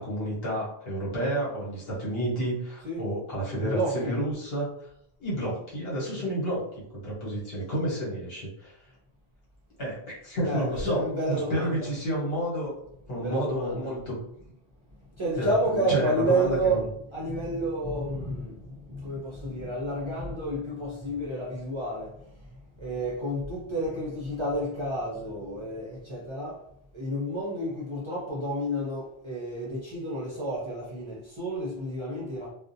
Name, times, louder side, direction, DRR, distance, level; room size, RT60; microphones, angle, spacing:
voice 1, 0.0-4.7 5.2-6.6 7.0-8.8 9.8-12.7 13.1-14.1 15.3-16.8, equal, 70° left, 1.2 m, -30 dB
voice 2, 3.6-4.2 6.2-6.3 10.4-12.0 13.1-14.0 15.2-26.6 26.9-32.5, right 1 dB, 40° right, 0.5 m, -30 dB
2.4 x 2.0 x 2.6 m
omnidirectional pair, 1.1 m